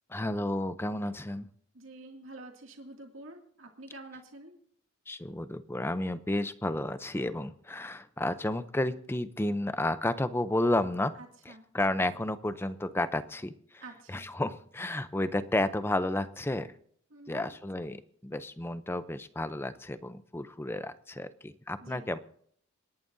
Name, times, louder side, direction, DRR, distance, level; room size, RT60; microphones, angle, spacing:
voice 1, 0.1-1.5 5.1-11.1 11.4-13.8 14.1-16.7 17.3-22.2, left 1 dB, 10° left, 13 dB, 0.5 m, -32 dB
voice 2, 1.7-4.5 11.2-11.6 13.8-14.3 17.1-17.5 21.8-22.1, right 2 dB, 65° right, 2 dB, 2.3 m, -48 dB
27.0 x 11.0 x 2.7 m, 0.62 s
head